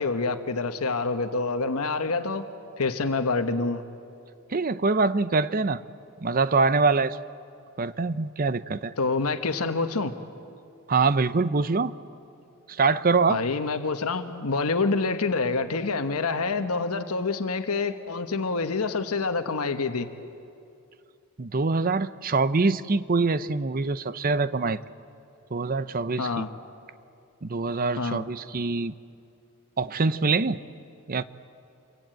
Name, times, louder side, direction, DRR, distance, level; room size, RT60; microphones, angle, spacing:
voice 1, 0.0-2.5 2.8-3.8 9.0-10.1 13.3-20.1 26.2-26.5 28.0-28.2, left 3 dB, 90° left, 7 dB, 1.2 m, -27 dB
voice 2, 4.5-5.8 6.2-7.2 7.8-8.9 10.9-11.9 12.7-13.4 21.4-24.8 25.5-26.5 27.4-28.9 29.8-30.6 31.1-31.2, right 4 dB, 40° right, 14 dB, 0.7 m, -24 dB
26.0 x 22.5 x 9.1 m, 2.6 s
head